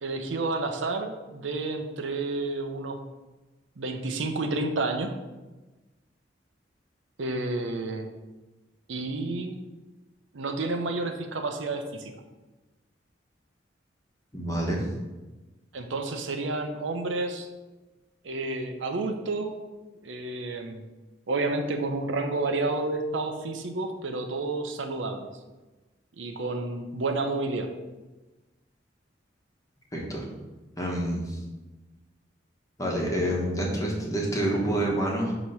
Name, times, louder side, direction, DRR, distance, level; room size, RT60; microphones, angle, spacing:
voice 1, 0.0-3.0 3.8-5.1 7.2-8.1 8.9-9.5 10.3-12.1 15.7-17.5 18.2-19.5 20.0-20.8 21.3-25.3 26.2-27.7, right 2 dB, 90° right, 5 dB, 0.6 m, -30 dB
voice 2, 14.3-14.8 29.9-30.2 30.8-31.4 32.8-35.3, right 1 dB, 20° left, -2 dB, 1.1 m, -27 dB
6.2 x 3.0 x 5.4 m, 1.1 s
head